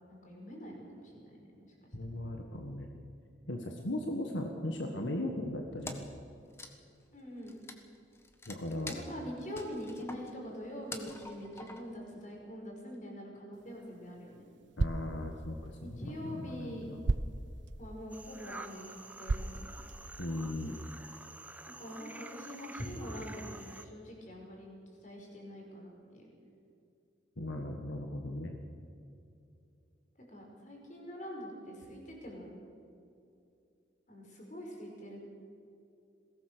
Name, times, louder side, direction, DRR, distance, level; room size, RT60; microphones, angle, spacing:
voice 1, 0.1-1.7 1.9-2.0 7.1-7.6 8.8-14.4 15.8-16.9 17.8-19.7 21.8-24.7 25.0-26.3 30.3-32.5 34.1-35.2, equal, 40° left, 0 dB, 5.5 m, -44 dB
voice 2, 1.9-2.9 3.5-6.0 8.5-8.9 14.8-16.0 16.2-17.0 20.2-20.8 27.4-28.6, left 1 dB, 80° left, 3 dB, 1.7 m, -37 dB
Wood, 5.8-6.2 6.5-12.1, left 2 dB, 15° left, 1.4 m, -47 dB
sound 1, 13.5-20.4, right 3 dB, 70° right, 0.7 m, -39 dB
sound 2, 18.1-23.9, right 2 dB, 10° right, 0.9 m, -49 dB
21.5 x 17.5 x 6.9 m, 2.6 s
head